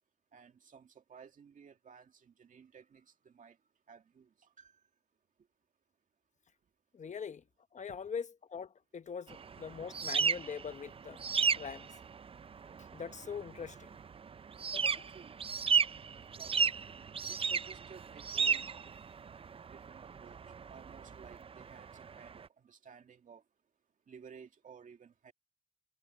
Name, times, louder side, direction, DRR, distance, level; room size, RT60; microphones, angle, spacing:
voice 1, 0.3-3.6 3.9-4.8 7.9-8.0 14.9-15.4 16.4-16.6 17.3-18.7 19.7-20.4 20.7-23.4 24.1-25.3, right 6 dB, 75° right, 2.3 m, -56 dB
voice 2, 6.9-7.4 7.7-11.2 11.5-11.9 12.9-13.9 14.7-15.1, left 6 dB, 60° left, 1.0 m, -42 dB
sound 1, 9.3-22.5, right 6 dB, 45° right, 0.4 m, -35 dB
cardioid pair, 50°, 14 cm